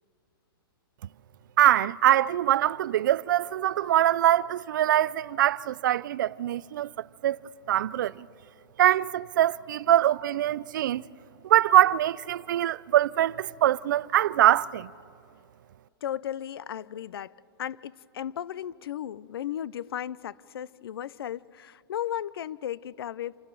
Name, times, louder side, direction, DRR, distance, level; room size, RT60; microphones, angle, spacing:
voice 1, 1.6-6.9 7.2-7.4 7.7-8.3 8.8-11.0 11.4-14.9, right 12 dB, 55° right, 0.4 m, -23 dB
voice 2, 16.0-17.3 17.6-23.4, left 10 dB, 75° left, 0.5 m, -35 dB
27.0 x 14.0 x 6.8 m
hypercardioid pair, 170°, 13 cm